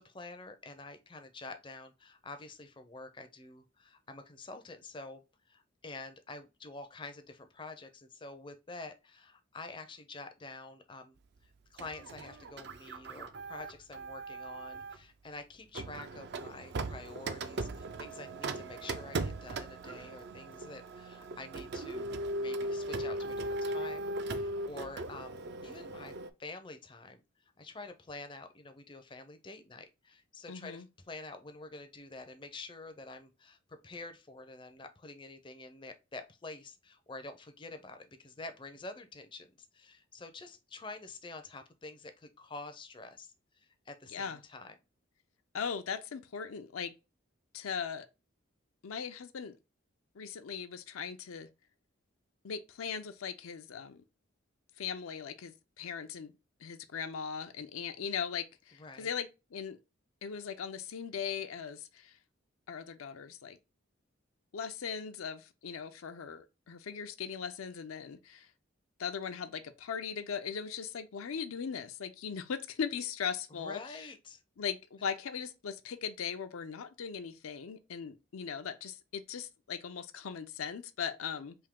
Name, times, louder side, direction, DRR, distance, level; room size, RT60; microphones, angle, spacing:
voice 1, 0.0-27.2 27.6-44.7 58.8-59.1 73.5-74.4, left 3 dB, 25° left, 0.4 m, -48 dB
Printer, 11.8-15.0 15.7-26.3, right 2 dB, 50° right, 0.4 m, -38 dB
voice 2, 30.5-30.9 44.1-44.4 45.5-46.9 47.5-48.1 48.8-49.6 50.1-51.5 52.4-54.0 54.8-56.3 56.6-59.8 60.2-62.2 62.7-63.6 64.5-68.5 69.0-74.0 74.6-81.6, left 7 dB, 85° left, 0.5 m, -39 dB
3.5 x 2.7 x 3.6 m
head